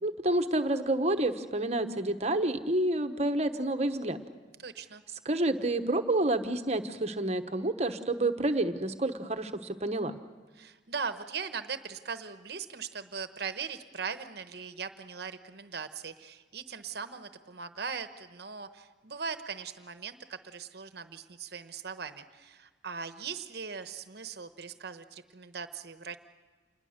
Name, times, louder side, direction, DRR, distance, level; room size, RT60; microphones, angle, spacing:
voice 1, 0.0-4.2 5.2-10.2, right 1 dB, 35° right, 8 dB, 1.1 m, -29 dB
voice 2, 4.6-5.0 10.5-26.2, right 6 dB, 60° right, 10 dB, 1.0 m, -40 dB
27.5 x 21.0 x 6.6 m, 1.4 s
head